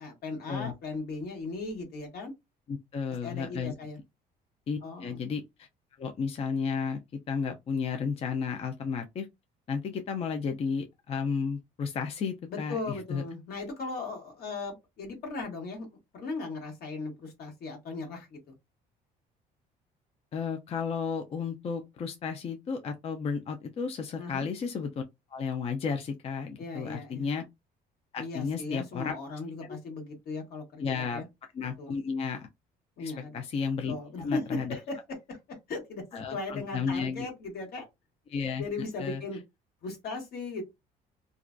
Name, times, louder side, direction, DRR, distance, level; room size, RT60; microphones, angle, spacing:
voice 1, 0.0-2.3 3.2-4.0 4.8-5.2 12.5-15.9 16.1-18.4 24.2-24.5 26.6-27.2 28.2-31.2 31.8-31.9 33.0-33.4 33.9-35.0 35.3-37.8 38.6-39.4 39.8-40.6, left 3 dB, 65° left, 1.2 m, -37 dB
voice 2, 2.7-3.7 4.7-5.7 6.0-7.0 7.3-9.3 9.7-13.2 20.3-25.0 25.3-27.4 28.1-29.2 30.8-31.2 31.5-32.5 33.0-34.8 36.1-37.3 38.3-38.6 39.0-39.2, left 5 dB, 35° left, 0.4 m, -33 dB
2.4 x 2.1 x 2.4 m
cardioid pair, 110°, 17 cm